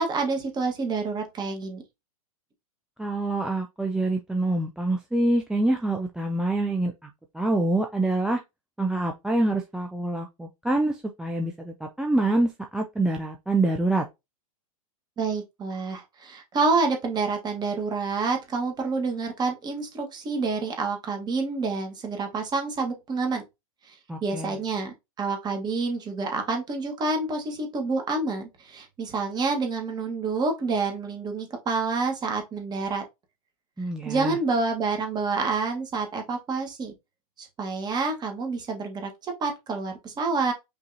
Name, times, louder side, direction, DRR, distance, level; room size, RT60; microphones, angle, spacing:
voice 1, 0.0-1.8 15.2-23.4 23.9-33.0 34.0-36.9 37.4-40.5, right 4 dB, 20° right, 1.3 m, -28 dB
voice 2, 3.0-7.1 7.3-8.4 8.8-14.1 24.1-24.6 33.8-34.4, right 2 dB, 5° right, 0.3 m, -26 dB
5.4 x 2.7 x 2.6 m
hypercardioid pair, 115°, 19 cm